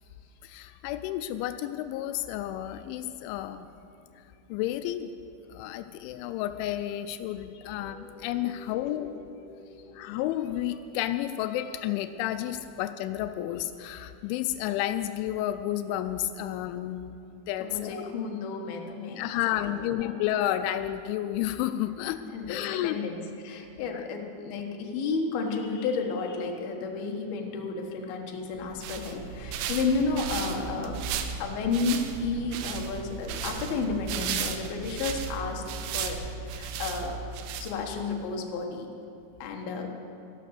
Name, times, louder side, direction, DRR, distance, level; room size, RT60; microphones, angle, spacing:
voice 1, 0.4-3.7 4.5-5.1 5.5-9.1 9.9-18.1 19.2-22.2 22.5-23.0 23.8-24.1, left 12 dB, 90° left, 10 dB, 3.0 m, -31 dB
sound 1, 7.7-11.2, left 2 dB, 30° left, 1.4 m, -50 dB
voice 2, 17.6-20.2 22.3-31.0 31.4-35.6 35.9-36.2 36.5-37.2 37.6-38.9 39.4-39.9, left 4 dB, 65° left, 2 dB, 2.9 m, -32 dB
sound 2, 28.6-38.1, right 7 dB, 90° right, 3.1 m, -35 dB
14.0 x 12.0 x 6.6 m, 2.7 s
omnidirectional pair, 5.3 m